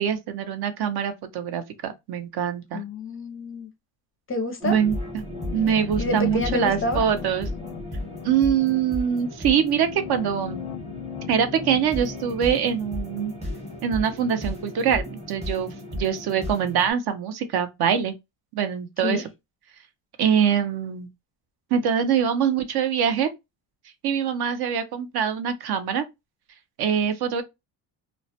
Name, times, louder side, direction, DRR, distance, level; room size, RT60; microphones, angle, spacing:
voice 1, 0.0-2.8 4.6-5.2 5.5-7.5 8.2-10.6 11.3-13.3 13.8-18.1 18.5-19.3 20.2-21.1 21.7-23.3 24.0-26.0 26.8-27.4, right 8 dB, 55° right, 0.6 m, -24 dB
voice 2, 2.7-3.7 4.3-4.8 6.0-7.0 19.0-19.3, left 2 dB, 30° left, 0.5 m, -28 dB
sound 1, 4.6-16.9, left 1 dB, 15° right, 0.8 m, -35 dB
sound 2, 5.3-14.2, left 10 dB, 85° left, 0.6 m, -39 dB
2.2 x 2.1 x 2.6 m
cardioid pair, 115°, 47 cm